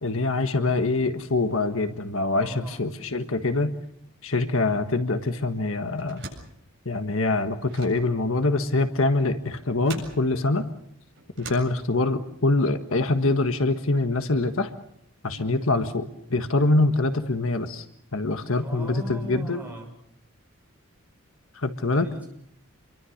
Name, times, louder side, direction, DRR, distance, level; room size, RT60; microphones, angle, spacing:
voice 1, 0.0-3.7 4.2-6.2 6.8-10.7 11.4-14.7 15.2-17.8 18.1-19.6 21.5-22.1, left 2 dB, 65° left, 8 dB, 1.5 m, -24 dB
voice 2, 2.4-2.8 15.2-15.6 18.6-19.9 21.9-22.3, equal, 5° right, 0 dB, 6.8 m, -40 dB
sound 1, 6.0-12.3, right 4 dB, 50° right, 7.8 m, -45 dB
28.0 x 23.5 x 6.6 m, 0.70 s
head